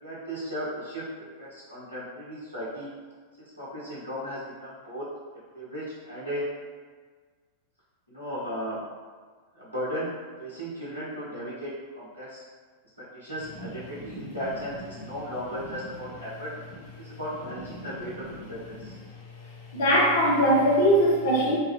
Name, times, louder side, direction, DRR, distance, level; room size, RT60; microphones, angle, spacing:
voice 1, 0.0-1.0 1.4-2.9 3.6-5.0 5.5-6.4 8.1-8.8 9.6-10.1 10.4-11.7 11.9-12.4 13.1-16.5 17.0-19.0, equal, 85° right, -10 dB, 0.9 m, -36 dB
voice 2, 17.7-18.1 18.4-18.5 18.8-18.9 19.7-21.6, equal, 50° left, -4 dB, 0.8 m, -22 dB
3.0 x 2.3 x 3.1 m, 1.5 s
figure-of-eight pair, 90°, 0 cm